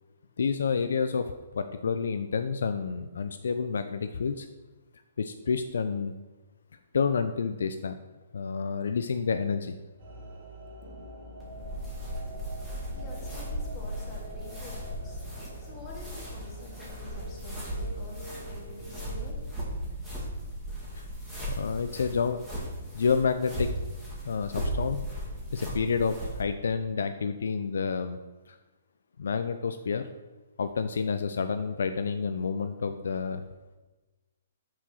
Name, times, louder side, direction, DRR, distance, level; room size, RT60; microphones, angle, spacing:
voice 1, 0.4-4.5 5.2-6.1 6.9-8.0 8.3-9.7 21.0-21.1 21.5-22.4 22.9-23.7 24.2-25.1 25.5-28.2 28.5-28.6 29.2-30.1 30.6-33.4, left 5 dB, 75° left, 9 dB, 0.4 m, -29 dB
sound 1, 10.0-19.4, equal, 55° right, 1.9 m, -44 dB
sound 2, 11.4-26.4, equal, 5° right, 2.0 m, -37 dB
voice 2, 12.9-15.2 15.6-19.3, left 2 dB, 25° left, -3 dB, 1.9 m, -48 dB
5.7 x 4.8 x 4.2 m, 1.2 s
hypercardioid pair, 140°, 0 cm